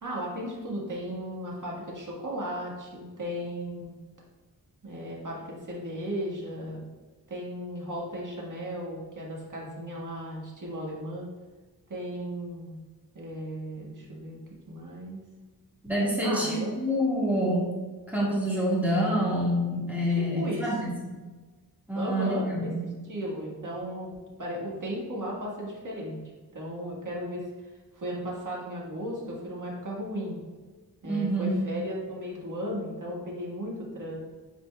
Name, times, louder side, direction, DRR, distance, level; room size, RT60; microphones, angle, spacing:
voice 1, 0.0-4.0 4.8-6.8 7.3-11.3 11.9-12.8 13.1-14.4 14.7-15.2 16.2-16.7 20.2-20.7 21.9-22.7 23.1-24.1 24.4-26.2 26.5-27.4 27.9-30.4 31.0-34.2, equal, 50° right, -3 dB, 1.7 m, -35 dB
voice 2, 15.8-17.7 18.1-21.1 21.9-22.8 31.0-31.7, equal, 5° right, -7 dB, 1.8 m, -27 dB
10.0 x 4.1 x 2.3 m, 1.3 s
wide cardioid pair, 110°, 40 cm